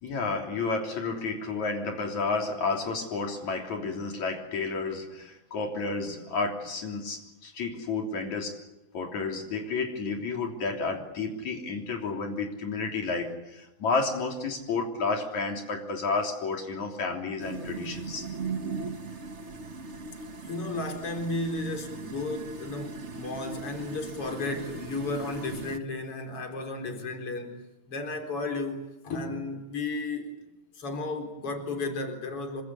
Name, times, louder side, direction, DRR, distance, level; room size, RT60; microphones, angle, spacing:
voice 1, 0.0-8.6 8.9-18.3, left 4 dB, 75° left, 4.7 m, -31 dB
sound 1, 17.4-25.8, right 3 dB, 35° right, 1.2 m, -38 dB
voice 2, 20.4-27.6 27.9-30.5 30.7-32.6, left 2 dB, 50° left, 5.1 m, -34 dB
28.0 x 25.5 x 8.4 m
omnidirectional pair, 3.3 m